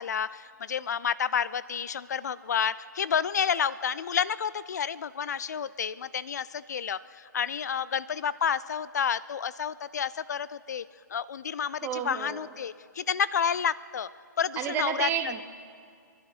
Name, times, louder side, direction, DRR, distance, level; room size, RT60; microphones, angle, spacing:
voice 1, 0.0-10.8 11.1-14.1 14.4-15.1, left 7 dB, 60° left, 18 dB, 0.4 m, -30 dB
voice 2, 11.8-12.5 14.6-15.4, right 10 dB, 20° right, 9 dB, 0.8 m, -31 dB
23.0 x 11.5 x 4.8 m, 2.3 s
figure-of-eight pair, 130°, 10 cm